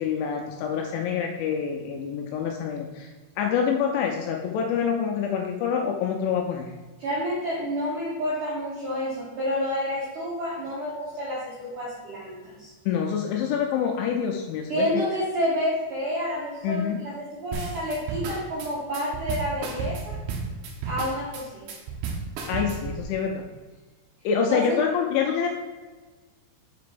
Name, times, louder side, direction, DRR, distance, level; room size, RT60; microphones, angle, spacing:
voice 1, 0.0-6.7 12.9-14.9 16.6-17.0 22.5-23.5 24.2-25.5, left 7 dB, 80° left, 2 dB, 2.8 m, -26 dB
voice 2, 7.0-12.7 14.7-20.1 20.9-21.7 24.5-24.6, equal, 70° right, -7 dB, 1.9 m, -29 dB
sound 1, 17.5-23.0, right 5 dB, 90° right, 2.2 m, -33 dB
6.8 x 5.2 x 5.0 m, 1.3 s
omnidirectional pair, 5.9 m